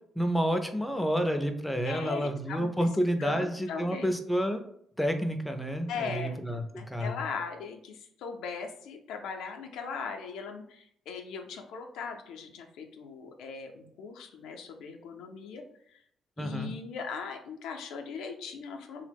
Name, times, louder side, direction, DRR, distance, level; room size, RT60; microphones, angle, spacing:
voice 1, 0.2-4.6 5.0-7.2 16.4-16.7, equal, 5° left, 6 dB, 0.4 m, -29 dB
voice 2, 1.8-2.7 3.2-4.1 5.9-16.0 16.4-19.0, left 5 dB, 90° left, 3 dB, 0.4 m, -39 dB
2.9 x 2.0 x 3.3 m, 0.68 s
cardioid pair, 90°, 0 cm